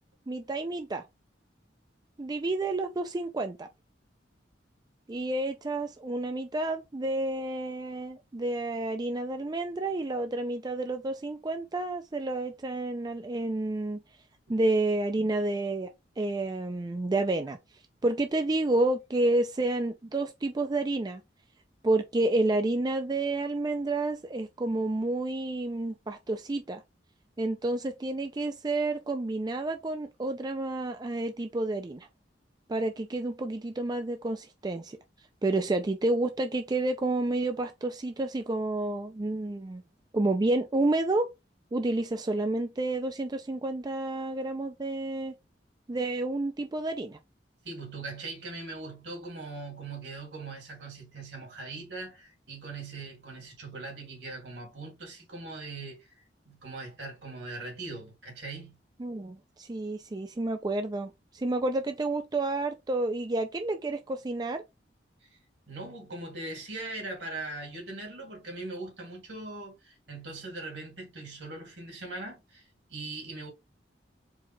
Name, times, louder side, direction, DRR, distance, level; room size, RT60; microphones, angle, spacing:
voice 1, 0.3-1.0 2.2-3.7 5.1-14.0 14.5-17.6 18.0-21.2 21.8-26.8 27.4-32.1 32.7-35.0 35.4-39.8 40.1-41.3 41.7-45.3 45.9-47.2 59.0-64.6, right 2 dB, 25° right, 0.4 m, -30 dB
voice 2, 47.6-56.1 56.4-58.8 65.7-73.5, right 3 dB, 70° right, 2.6 m, -40 dB
4.6 x 2.4 x 4.3 m
head